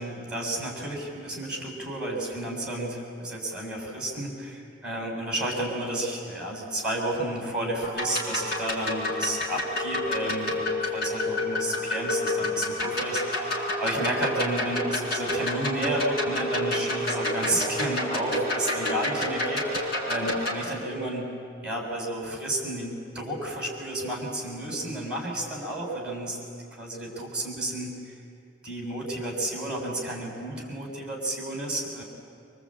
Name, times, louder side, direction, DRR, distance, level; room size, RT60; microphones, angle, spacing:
voice 1, 0.0-21.3 21.6-26.4 26.8-28.1 28.6-32.0, right 1 dB, 5° right, -1 dB, 6.4 m, -31 dB
sound 1, 7.8-20.5, left 1 dB, 55° left, 5.5 m, -29 dB
27.0 x 24.5 x 8.7 m, 2.4 s
head